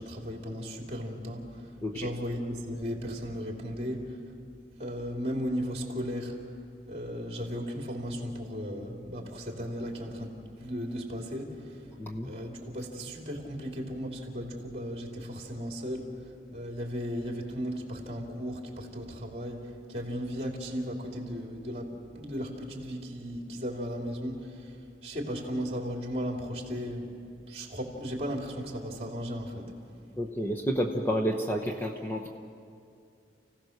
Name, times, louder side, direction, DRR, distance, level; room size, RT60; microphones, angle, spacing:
voice 1, 0.0-4.2 4.8-6.4 6.9-11.9 12.2-27.1 27.5-29.7, equal, 35° right, 1 dB, 3.0 m, -36 dB
voice 2, 12.0-12.3 30.2-32.3, equal, 15° left, 1 dB, 0.9 m, -30 dB
29.5 x 16.5 x 6.6 m, 2.5 s
head